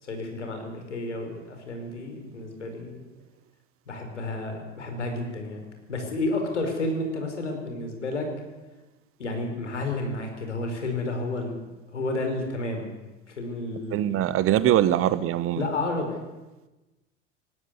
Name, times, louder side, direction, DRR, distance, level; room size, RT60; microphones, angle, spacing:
voice 1, 0.0-3.0 3.9-5.6 5.9-8.3 9.2-11.6 11.9-12.9 13.3-14.2 14.6-14.7 15.6-16.2, left 2 dB, 80° left, 5.4 m, -31 dB
voice 2, 13.9-15.7, right 12 dB, 40° right, 1.2 m, -22 dB
20.0 x 17.0 x 9.8 m
figure-of-eight pair, 80°, 35 cm